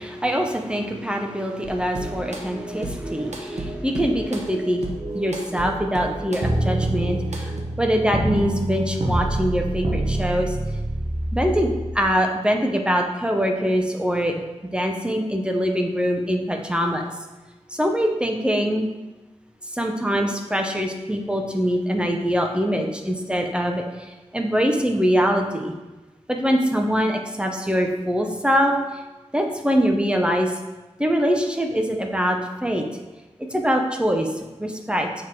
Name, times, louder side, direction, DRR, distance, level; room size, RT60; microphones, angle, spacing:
voice 1, 0.0-10.6 11.3-14.4 14.7-17.0 17.7-18.9 19.6-25.7 26.3-29.0 29.3-30.6 31.0-32.8 33.5-34.3 34.6-35.1, equal, 10° right, 3 dB, 0.8 m, -23 dB
sound 1, 1.6-7.6, right 2 dB, 70° right, 1.1 m, -33 dB
sound 2, 6.4-11.9, right 1 dB, 45° right, 1.1 m, -25 dB
7.2 x 3.8 x 4.7 m, 1.1 s
wide cardioid pair, 70°, 12 cm